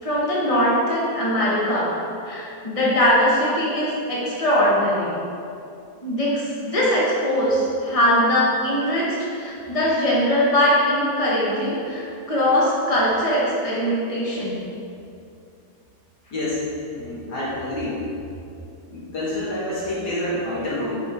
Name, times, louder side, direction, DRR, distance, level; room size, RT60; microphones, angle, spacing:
voice 1, 0.0-1.9 2.2-5.1 6.0-12.0 12.3-14.6, equal, 20° left, -7 dB, 1.7 m, -21 dB
voice 2, 16.3-16.6 17.0-18.0 18.9-21.0, left 1 dB, 90° left, -8 dB, 2.8 m, -27 dB
10.0 x 5.5 x 3.7 m, 2.6 s
omnidirectional pair, 1.7 m